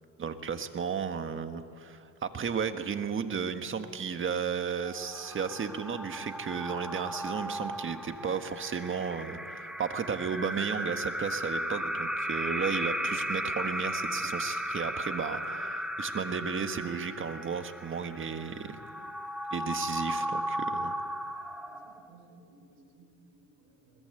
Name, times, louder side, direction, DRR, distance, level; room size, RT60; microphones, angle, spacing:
voice 1, 0.2-18.8 19.5-20.9, right 6 dB, 35° right, 8 dB, 1.6 m, -34 dB
sound 1, 4.8-22.2, equal, ahead, 1.2 m, -35 dB
voice 2, 21.7-24.0, right 2 dB, 80° right, -1 dB, 5.7 m, -59 dB
21.5 x 20.5 x 9.1 m, 2.3 s
cardioid pair, 115°, 35 cm